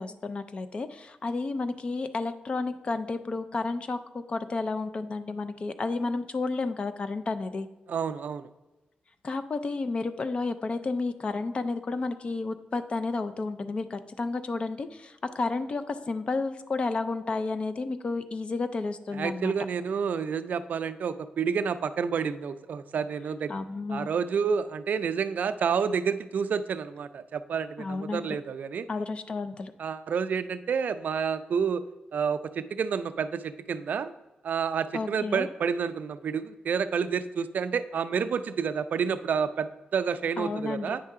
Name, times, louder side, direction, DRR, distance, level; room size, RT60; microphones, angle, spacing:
voice 1, 0.0-7.7 9.2-19.5 23.5-24.1 27.8-28.3 28.9-29.7 34.9-35.5 40.4-40.9, left 3 dB, 35° left, 11 dB, 0.4 m, -31 dB
voice 2, 7.9-8.5 19.1-23.5 23.9-28.9 29.8-31.8 32.1-34.1 34.4-41.0, right 6 dB, 60° right, 12 dB, 0.3 m, -29 dB
8.6 x 5.5 x 3.6 m, 1.0 s
wide cardioid pair, 165°, 3 cm